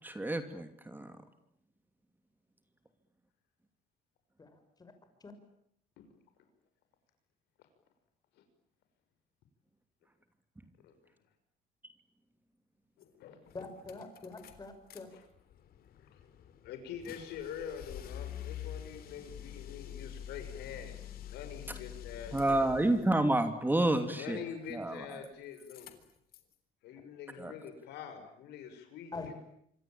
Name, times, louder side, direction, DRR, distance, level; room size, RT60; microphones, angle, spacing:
voice 1, 0.0-1.2 22.3-24.4 24.7-25.3 27.4-27.5, right 1 dB, 10° right, 8 dB, 2.9 m, -29 dB
voice 2, 13.0-13.5 15.0-15.3 16.0-16.2 16.6-21.0 21.3-22.7 24.1-25.9 26.8-29.3, left 8 dB, 80° left, 8 dB, 6.1 m, -45 dB
sound 1, 13.0-13.1 13.5-15.0 15.3-23.1 24.6-25.3 25.5-26.5, left 10 dB, 65° left, 3.6 m, -47 dB
voice 3, 13.5-15.1 29.1-29.3, left 3 dB, 25° left, 8 dB, 6.3 m, -44 dB
26.0 x 25.0 x 9.0 m, 0.73 s
cardioid pair, 110°, 17 cm